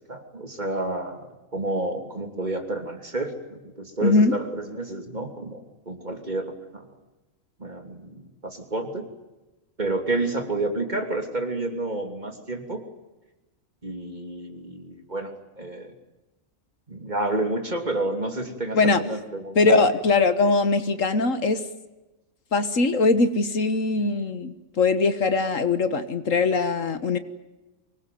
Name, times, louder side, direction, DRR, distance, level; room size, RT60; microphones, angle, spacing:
voice 1, 0.1-5.6 5.9-6.9 7.6-9.1 9.8-12.8 13.8-15.9 16.9-19.9, right 2 dB, 30° right, 5 dB, 3.2 m, -30 dB
voice 2, 4.0-4.4 18.7-19.0 19.6-21.6 22.5-27.2, left 3 dB, 70° left, 11 dB, 1.8 m, -21 dB
25.0 x 20.0 x 9.4 m, 1.1 s
omnidirectional pair, 1.4 m